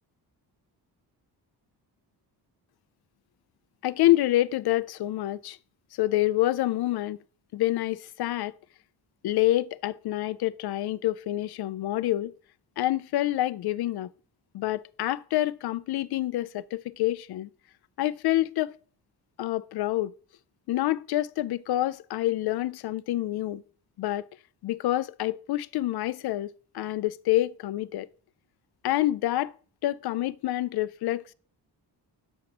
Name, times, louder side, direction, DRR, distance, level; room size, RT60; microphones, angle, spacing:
voice 1, 3.8-5.6 6.0-7.2 7.5-8.5 9.2-12.3 12.8-14.1 14.5-17.5 18.0-18.7 19.4-20.1 20.7-23.6 24.0-24.3 24.6-28.1 28.8-29.5 29.8-31.3, left 15 dB, 70° left, 0.5 m, -27 dB
6.3 x 5.9 x 5.9 m
wide cardioid pair, 175°, 40 cm